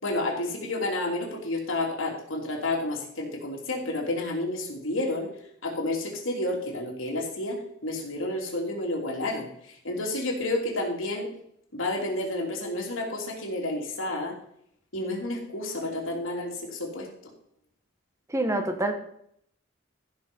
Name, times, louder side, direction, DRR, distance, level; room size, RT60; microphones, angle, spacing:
voice 1, 0.0-5.3 5.6-7.6 7.8-11.3 11.7-14.3 14.9-17.1, left 2 dB, 80° left, 0 dB, 3.2 m, -30 dB
voice 2, 18.3-18.9, right 1 dB, 15° right, 5 dB, 1.3 m, -26 dB
15.0 x 6.5 x 5.4 m, 0.70 s
head